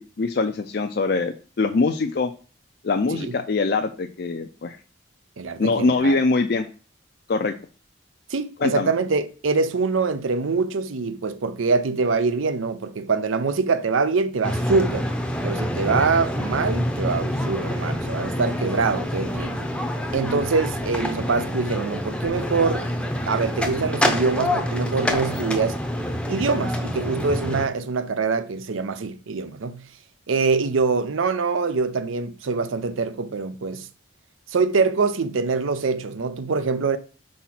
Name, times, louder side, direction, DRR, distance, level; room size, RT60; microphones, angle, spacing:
voice 1, 0.0-2.3 2.8-4.8 5.6-6.7 7.3-7.5 8.6-8.9, left 3 dB, 50° left, 0.4 m, -23 dB
voice 2, 5.4-6.2 8.3-15.1 15.4-19.7 20.1-22.9 23.3-25.8 26.3-29.8 30.3-33.9 34.5-37.0, right 4 dB, 85° right, 0.6 m, -24 dB
sound 1, 14.4-27.7, equal, 5° left, 0.6 m, -27 dB
4.6 x 4.3 x 5.8 m
head